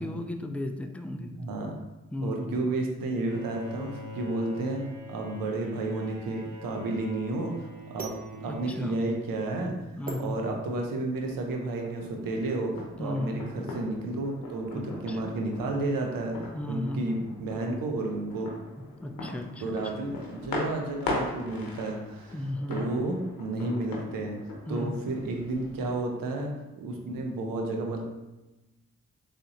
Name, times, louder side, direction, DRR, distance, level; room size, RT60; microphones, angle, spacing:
voice 1, 0.0-1.3 2.1-2.7 8.5-9.0 10.0-10.4 13.0-13.6 14.7-15.4 16.5-17.2 19.0-19.8 22.3-22.8 24.7-25.1, left 1 dB, 5° left, 5 dB, 0.4 m, -35 dB
voice 2, 1.1-1.8 2.2-4.8 5.1-7.7 7.9-8.1 8.4-16.4 16.7-18.5 19.6-22.3 22.7-24.4 24.7-28.0, right 2 dB, 80° right, 1 dB, 0.7 m, -32 dB
Bowed string instrument, 3.2-10.0, left 1 dB, 60° right, 1.1 m, -45 dB
sound 1, 8.0-11.1, right 2 dB, 25° right, 0.9 m, -44 dB
sound 2, 11.1-26.0, left 2 dB, 85° left, 0.8 m, -40 dB
3.7 x 3.4 x 2.8 m, 1.0 s
supercardioid pair, 40°, 34 cm